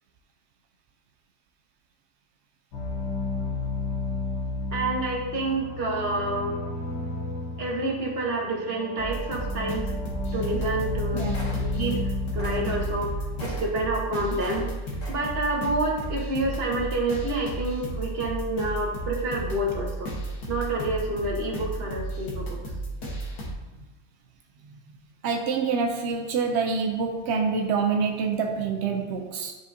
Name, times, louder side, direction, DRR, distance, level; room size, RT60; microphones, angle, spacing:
sound 1, 2.7-13.5, left 3 dB, 85° left, 1.7 m, -32 dB
voice 1, 4.7-6.6 7.6-9.9 10.3-12.0 12.3-13.1 13.4-14.7 15.1-20.1 20.5-22.6, right 2 dB, 40° right, 1.4 m, -28 dB
sound 2, 9.0-23.5, right 2 dB, 70° left, 1.7 m, -33 dB
sound 3, 10.5-11.0 11.3-12.0 12.3-14.7 15.0-15.5 16.0-16.2, left 1 dB, 40° left, 2.1 m, -42 dB
voice 2, 11.1-11.4 25.2-29.5, right 5 dB, 70° right, 0.6 m, -26 dB
9.9 x 4.9 x 2.7 m
omnidirectional pair, 1.7 m